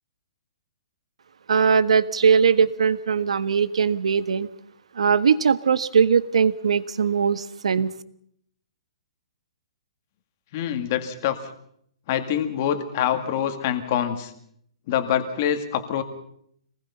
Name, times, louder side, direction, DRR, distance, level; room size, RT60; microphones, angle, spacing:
voice 1, 1.5-4.5 4.9-7.9, right 6 dB, 80° right, 14 dB, 1.4 m, -20 dB
voice 2, 10.5-11.4 12.1-14.3 14.9-16.0, left 10 dB, 25° left, 7 dB, 2.1 m, -25 dB
27.0 x 20.0 x 5.6 m, 0.68 s
hypercardioid pair, 180°, 3 cm